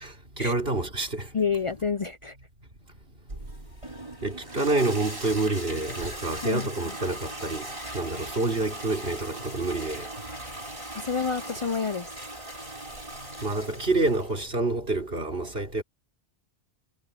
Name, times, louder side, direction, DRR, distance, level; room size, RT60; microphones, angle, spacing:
voice 1, 0.0-1.3 4.2-7.7 7.9-10.0 13.4-15.8, right 2 dB, 70° right, 4.0 m, -28 dB
voice 2, 1.3-2.3 6.4-6.6 11.0-12.1, left 5 dB, 40° left, 0.6 m, -28 dB
Toilet flush, 3.3-14.3, right 1 dB, 30° right, 5.7 m, -39 dB
omnidirectional pair, 1.0 m